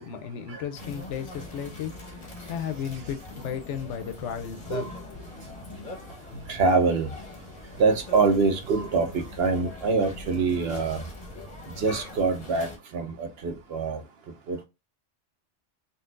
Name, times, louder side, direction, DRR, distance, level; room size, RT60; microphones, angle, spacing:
voice 1, 0.0-1.9 2.5-4.9, left 8 dB, 75° left, 0.9 m, -34 dB
sound 1, 0.7-12.8, left 2 dB, 35° left, 0.8 m, -42 dB
voice 2, 6.5-7.1 7.8-11.0 11.8-12.7 12.9-14.0 14.5-14.6, right 4 dB, 65° right, 0.8 m, -24 dB
3.8 x 2.2 x 2.4 m
omnidirectional pair, 1.2 m